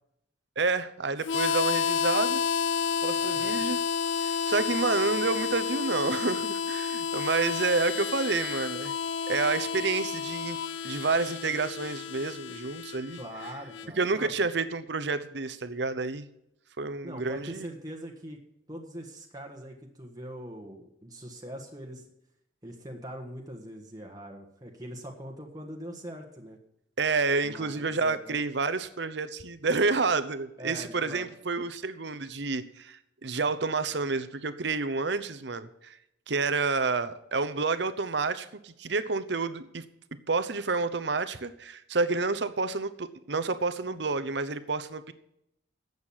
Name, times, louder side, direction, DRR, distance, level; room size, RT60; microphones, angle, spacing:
voice 1, 0.6-2.4 3.0-3.8 4.2-8.9 9.3-10.6 10.8-13.2 14.0-16.3 16.8-17.7 27.0-36.0 36.3-39.8 40.3-45.1, right 4 dB, 65° right, 12 dB, 0.9 m, -29 dB
Harmonica, 1.2-13.9, left 7 dB, 75° left, 0.5 m, -30 dB
voice 2, 3.2-3.6 13.2-14.3 17.0-18.4 18.7-22.1 22.6-26.6 27.4-28.4 30.6-31.3, equal, 20° right, 1 dB, 1.5 m, -42 dB
11.5 x 8.1 x 7.2 m, 0.80 s
head